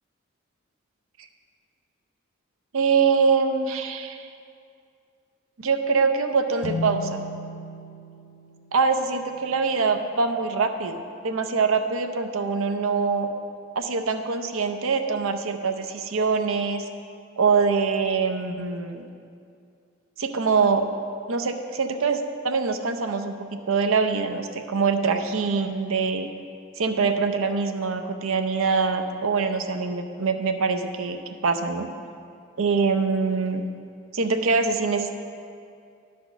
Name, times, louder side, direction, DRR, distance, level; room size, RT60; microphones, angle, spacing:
voice 1, 2.7-4.3 5.6-7.2 8.7-13.3 13.8-16.8 17.4-19.0 20.2-20.9 21.3-26.3 26.8-31.9 32.6-33.6 34.1-35.1, right 5 dB, 80° right, 7 dB, 0.6 m, -24 dB
sound 1, 6.6-10.2, left 2 dB, 75° left, 0.7 m, -36 dB
11.5 x 4.3 x 5.9 m, 2.4 s
head